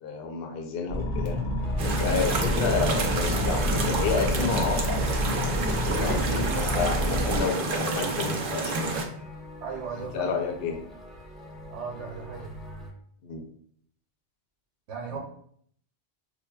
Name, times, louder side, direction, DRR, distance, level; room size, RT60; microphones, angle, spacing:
voice 1, 0.0-1.4 2.0-5.2 5.4-9.2 10.1-10.8 13.2-13.4 15.1-15.2, left 5 dB, 65° left, 3 dB, 0.8 m, -30 dB
sound 1, 0.9-7.4, equal, 85° left, 1.0 m, -28 dB
sound 2, 1.6-12.9, left 1 dB, ahead, 0.8 m, -45 dB
sound 3, 1.8-9.0, right 3 dB, 55° right, 0.7 m, -29 dB
voice 2, 9.6-10.3 11.7-12.5 14.9-15.2, right 6 dB, 85° right, -2 dB, 1.0 m, -36 dB
5.3 x 2.2 x 2.2 m, 0.64 s
omnidirectional pair, 1.2 m